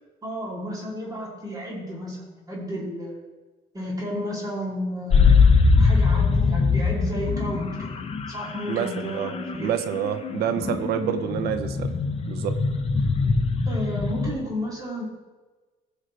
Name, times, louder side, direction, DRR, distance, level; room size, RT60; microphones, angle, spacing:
voice 1, 0.2-3.2 3.7-5.4 5.8-7.9 8.3-9.7 13.6-15.0, equal, 20° right, -4 dB, 3.3 m, -32 dB
sound 1, 5.1-14.3, left 4 dB, 35° left, 1.0 m, -22 dB
voice 2, 8.7-9.3 9.6-11.9 12.3-12.6, right 9 dB, 75° right, 9 dB, 0.8 m, -27 dB
17.0 x 6.4 x 3.4 m, 1.2 s
cardioid pair, 110°, 17 cm